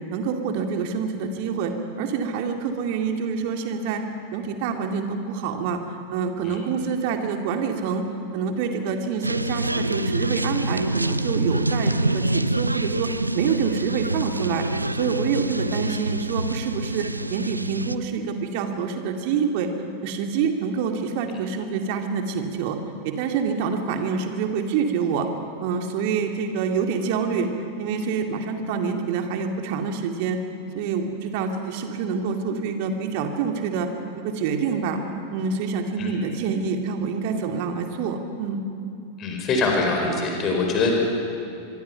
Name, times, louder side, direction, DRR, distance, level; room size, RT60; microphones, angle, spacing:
voice 1, 0.1-4.0 4.3-5.8 6.1-8.0 8.3-14.7 14.9-19.7 20.0-22.8 23.0-25.3 25.6-27.5 27.8-30.4 30.7-33.9 34.2-35.0 35.3-38.6, right 6 dB, 45° right, 5 dB, 2.3 m, -26 dB
sound 1, 9.2-17.9, right 2 dB, 85° right, 0.5 m, -26 dB
voice 2, 39.2-40.9, left 3 dB, 30° left, 1 dB, 5.0 m, -23 dB
25.0 x 23.0 x 5.8 m, 2.6 s
figure-of-eight pair, 90°, 0 cm